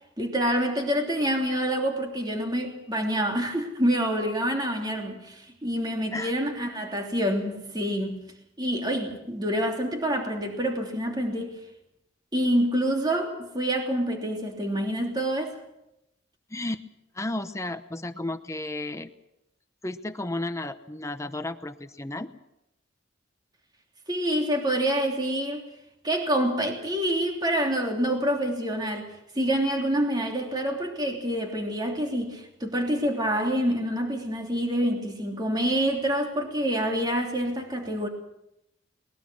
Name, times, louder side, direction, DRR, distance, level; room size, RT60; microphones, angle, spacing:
voice 1, 0.2-8.2 8.6-11.5 12.3-15.6 24.1-25.6 26.0-29.1 29.3-38.1, equal, 20° right, 3.2 m, -27 dB
voice 2, 16.5-16.8 17.1-19.1 19.8-22.3, left 2 dB, 15° left, 0.8 m, -33 dB
22.5 x 21.0 x 6.3 m
head